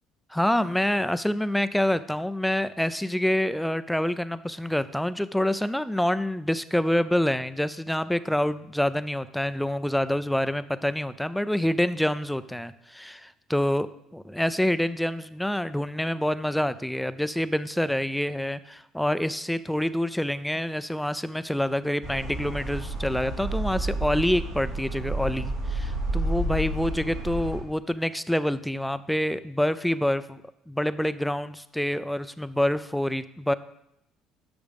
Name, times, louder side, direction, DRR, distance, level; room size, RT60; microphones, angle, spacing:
voice 1, 0.3-13.9 14.1-30.4 30.7-33.5, left 1 dB, 5° left, 14 dB, 0.5 m, -27 dB
sound 1, 22.0-27.6, right 1 dB, 85° right, 3.7 m, -30 dB
10.5 x 6.2 x 5.3 m, 0.80 s
supercardioid pair, 95°, 0 cm